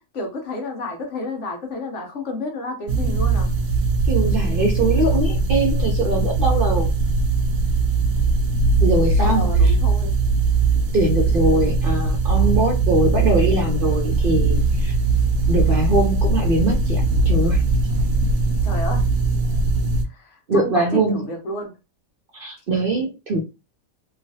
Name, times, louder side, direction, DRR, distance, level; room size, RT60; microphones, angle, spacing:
voice 1, 0.1-3.5 9.1-10.1 18.6-19.0 20.0-21.7, left 2 dB, 60° left, 1.2 m, -30 dB
sound 1, 2.9-20.0, right 3 dB, 90° right, 1.0 m, -20 dB
voice 2, 4.1-6.9 8.8-9.7 10.9-15.0 15.5-17.6 20.5-21.3 22.3-23.4, right 2 dB, 55° right, 0.7 m, -22 dB
3.0 x 2.3 x 2.7 m
omnidirectional pair, 1.4 m